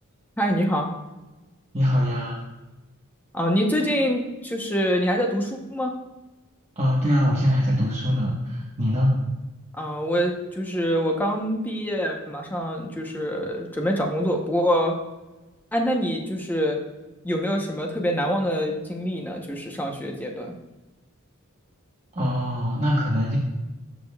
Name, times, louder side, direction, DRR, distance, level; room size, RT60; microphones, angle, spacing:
voice 1, 0.4-0.9 3.3-5.9 9.7-15.0 15.7-16.8 17.2-20.5, equal, 10° left, 1 dB, 0.8 m, -25 dB
voice 2, 1.7-2.4 6.8-9.2 22.1-23.4, equal, 30° right, -6 dB, 1.2 m, -23 dB
13.5 x 5.1 x 2.3 m, 1.1 s
head